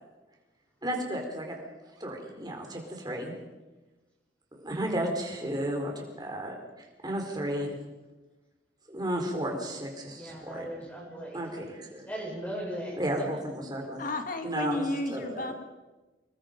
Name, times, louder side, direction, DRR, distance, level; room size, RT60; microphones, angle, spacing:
voice 1, 0.8-1.6 2.0-3.3 4.6-7.7 8.9-10.7 11.3-12.1 13.0-14.0 14.4-14.8 15.1-15.5, right 1 dB, 25° right, 2 dB, 4.3 m, -33 dB
voice 2, 10.1-11.4 12.1-13.3, equal, 10° left, -4 dB, 7.2 m, -38 dB
voice 3, 14.0-15.5, left 1 dB, 50° left, 6 dB, 2.2 m, -32 dB
26.5 x 21.0 x 5.3 m, 1.2 s
head